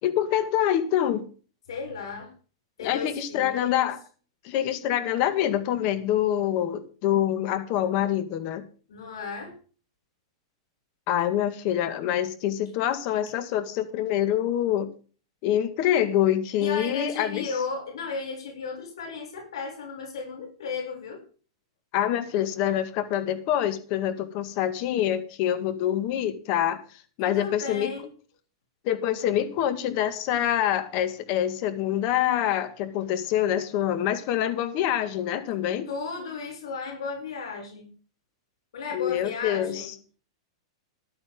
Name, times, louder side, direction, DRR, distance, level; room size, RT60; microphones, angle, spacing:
voice 1, 0.0-1.3 2.8-4.0 4.4-8.6 11.1-14.9 15.4-17.5 21.9-26.8 27.2-27.9 28.8-35.9 38.9-39.9, left 11 dB, 40° left, 11 dB, 1.9 m, -26 dB
voice 2, 1.7-2.3 2.8-3.9 8.9-9.6 16.6-21.2 27.2-28.1 35.9-37.9 38.7-39.9, left 4 dB, 85° left, 1 dB, 7.0 m, -35 dB
14.0 x 11.5 x 3.8 m, 0.38 s
supercardioid pair, 155°, 3 cm